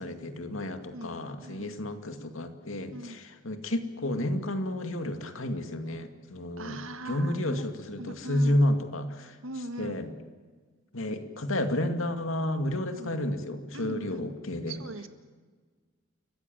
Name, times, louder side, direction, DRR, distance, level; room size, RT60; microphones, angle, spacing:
voice 1, 0.0-6.8 7.0-9.4 9.8-10.1 10.9-14.8, left 1 dB, 85° left, 7 dB, 2.4 m, -31 dB
voice 2, 1.4-1.7 2.9-3.2 6.6-7.6 8.0-8.6 9.4-10.0 13.0-13.2 13.7-14.2 14.7-15.1, right 1 dB, 90° right, 9 dB, 1.8 m, -40 dB
30.0 x 15.0 x 9.0 m, 1.5 s
head